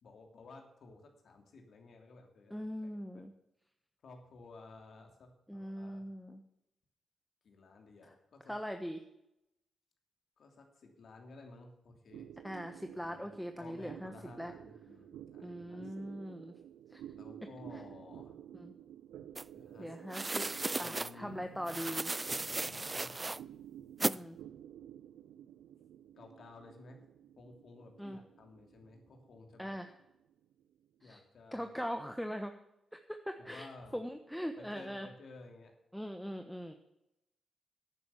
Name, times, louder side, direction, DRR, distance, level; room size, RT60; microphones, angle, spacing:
voice 1, 0.0-3.2 4.0-6.0 7.4-8.5 10.4-12.3 13.0-13.3 13.5-15.9 17.1-18.4 19.5-20.0 20.4-21.4 22.4-23.3 24.0-24.2 26.2-27.0 27.4-29.8 31.0-31.7 33.4-34.0 34.6-35.7, left 3 dB, 65° left, 3 dB, 2.9 m, -55 dB
voice 2, 2.5-3.3 5.5-6.4 8.5-9.0 12.4-14.1 14.4-14.5 15.4-16.5 16.9-17.0 18.5-18.7 19.8-20.5 20.8-22.1 24.0-24.4 28.0-28.2 29.6-29.9 31.0-31.2 31.5-32.5 32.9-33.7 33.9-35.1 35.9-36.7, equal, 5° left, 6 dB, 1.2 m, -41 dB
Fireworks in the distance, 12.1-30.9, right 10 dB, 80° right, 0.5 m, -52 dB
sound 1, 19.3-19.4 20.1-21.1 21.7-23.4 24.0-24.2, right 2 dB, 30° right, 0.4 m, -35 dB
11.0 x 9.2 x 7.2 m, 0.87 s
supercardioid pair, 50°, 0 cm